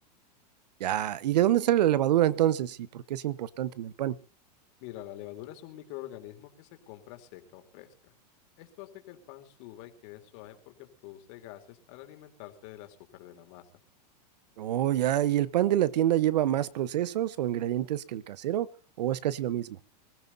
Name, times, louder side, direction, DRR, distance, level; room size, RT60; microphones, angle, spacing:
voice 1, 0.8-4.1 14.6-18.7 19.0-19.7, right 12 dB, 80° right, 18 dB, 1.1 m, -26 dB
voice 2, 4.8-8.1 8.6-13.6, left 14 dB, 45° left, 5 dB, 3.4 m, -46 dB
26.0 x 15.0 x 2.7 m, 0.34 s
supercardioid pair, 155°, 21 cm